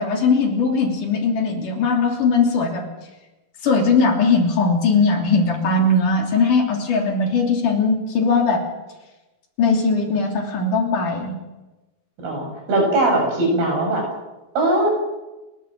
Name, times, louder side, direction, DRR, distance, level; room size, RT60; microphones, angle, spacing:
voice 1, 0.0-2.8 3.6-8.6 9.6-11.4, left 4 dB, 60° left, 1 dB, 4.5 m, -19 dB
voice 2, 12.2-14.1 14.6-14.9, right 2 dB, 90° right, 1 dB, 8.9 m, -20 dB
30.0 x 12.5 x 7.6 m, 1.1 s
omnidirectional pair, 4.3 m